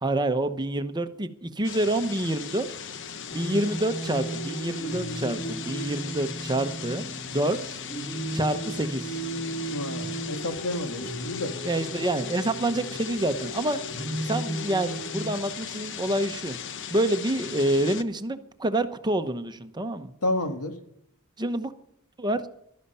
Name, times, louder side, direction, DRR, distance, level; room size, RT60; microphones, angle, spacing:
voice 1, 0.0-2.7 3.3-7.0 7.3-7.8 8.3-9.2 11.6-13.8 14.2-16.6 16.9-20.1 21.4-21.7 22.2-22.4, right 1 dB, 20° right, 9 dB, 0.9 m, -27 dB
sound 1, 1.6-18.0, left 7 dB, 60° left, 0.9 m, -38 dB
sound 2, 3.3-15.3, right 1 dB, 30° left, 3.5 m, -35 dB
voice 2, 9.7-11.5 20.2-20.8, left 1 dB, 85° left, 6 dB, 1.9 m, -30 dB
16.0 x 12.5 x 5.6 m, 0.74 s
head